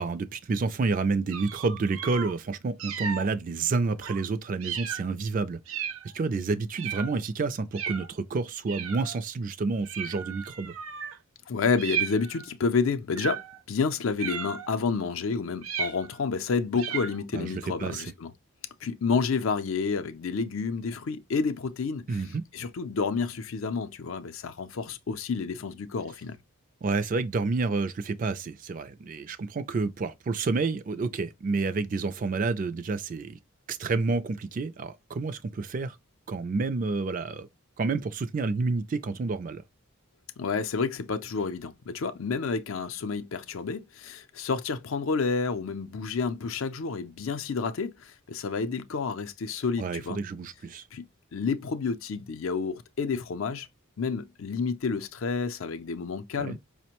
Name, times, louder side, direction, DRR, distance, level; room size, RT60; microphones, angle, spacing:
voice 1, 0.0-5.6 6.1-10.7 17.3-18.0 22.1-22.4 26.8-33.4 33.7-36.0 36.3-37.5 37.8-39.6 49.8-50.8 56.4-56.6, right 4 dB, 40° right, 0.3 m, -29 dB
sound 1, 1.3-2.3 2.8-3.3 4.0-4.2 4.6-5.1 5.7-6.1 6.8-7.2 7.7-8.1 8.7-9.2 9.8-11.2 11.8-12.5 13.2-13.6 14.2-14.8 15.6-16.3 16.7-17.2, right 7 dB, 80° right, 0.6 m, -35 dB
voice 2, 11.5-18.3 18.8-22.2 22.5-26.4 40.4-50.2 50.9-51.0 51.3-53.7 54.0-56.6, left 5 dB, 75° left, 0.5 m, -30 dB
5.0 x 2.1 x 2.8 m
head